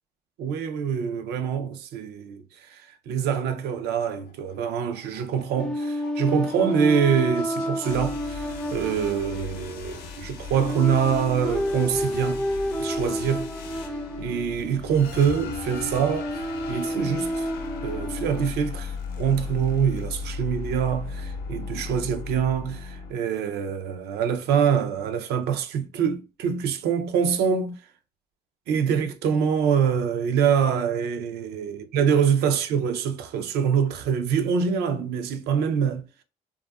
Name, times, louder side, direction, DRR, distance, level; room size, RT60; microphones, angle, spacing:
voice 1, 0.4-12.5 12.8-13.9 14.2-17.5 17.8-27.8 28.7-36.0, right 7 dB, 75° right, 0.5 m, -25 dB
sound 1, 4.3-23.1, left 5 dB, 70° left, 0.6 m, -37 dB
sound 2, 5.6-18.5, equal, 5° left, 0.3 m, -31 dB
2.6 x 2.4 x 2.2 m
cardioid pair, 110°, 17 cm